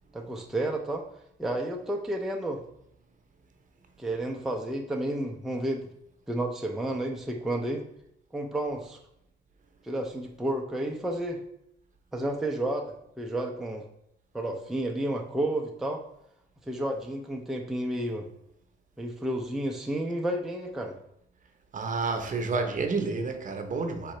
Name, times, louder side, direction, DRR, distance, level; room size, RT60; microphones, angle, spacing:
voice 1, 0.1-1.0 1.4-2.6 4.0-5.9 6.3-7.8 8.3-9.0 9.9-11.4 12.1-13.8 14.3-16.0 16.7-18.3 19.0-20.9, right 1 dB, ahead, 1 dB, 0.5 m, -31 dB
voice 2, 21.7-24.1, right 4 dB, 40° right, 5 dB, 0.7 m, -29 dB
4.2 x 3.7 x 3.1 m, 0.77 s
cardioid pair, 90°, 20 cm